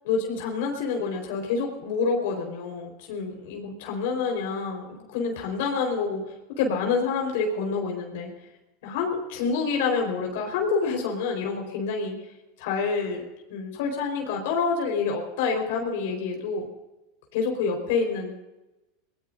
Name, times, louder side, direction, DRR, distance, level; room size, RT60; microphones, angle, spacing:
voice 1, 0.0-6.2 6.6-8.3 8.8-12.2 12.6-13.2 13.5-16.7 17.3-18.4, left 5 dB, 70° left, 2 dB, 4.4 m, -27 dB
23.5 x 19.5 x 2.6 m, 1.0 s
hypercardioid pair, 105°, 0 cm